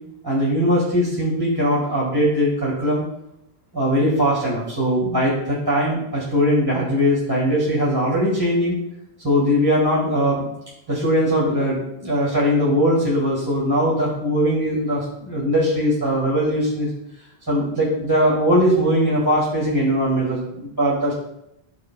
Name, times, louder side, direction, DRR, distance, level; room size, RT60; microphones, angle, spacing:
voice 1, 0.2-3.0 3.7-8.7 9.2-10.4 10.9-16.9 17.5-21.1, equal, 20° right, -6 dB, 1.7 m, -20 dB
14.0 x 4.8 x 2.2 m, 0.81 s
omnidirectional pair, 1.0 m